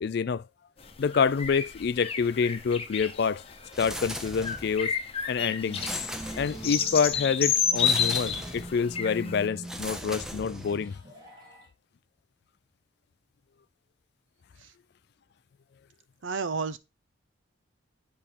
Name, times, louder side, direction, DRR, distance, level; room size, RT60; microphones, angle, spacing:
voice 1, 0.0-0.4 1.0-3.4 3.8-4.9 5.3-5.8 6.4-11.0, left 6 dB, 55° left, 0.3 m, -27 dB
sound 1, 0.8-9.4, left 7 dB, 30° left, 0.9 m, -31 dB
sound 2, 3.7-4.8 5.7-6.9 7.7-8.8 9.6-10.9, equal, 5° right, 0.6 m, -38 dB
sound 3, 5.4-11.7, right 1 dB, 20° right, 2.1 m, -44 dB
voice 2, 16.2-16.8, right 4 dB, 70° right, 0.6 m, -31 dB
9.9 x 4.3 x 3.6 m
head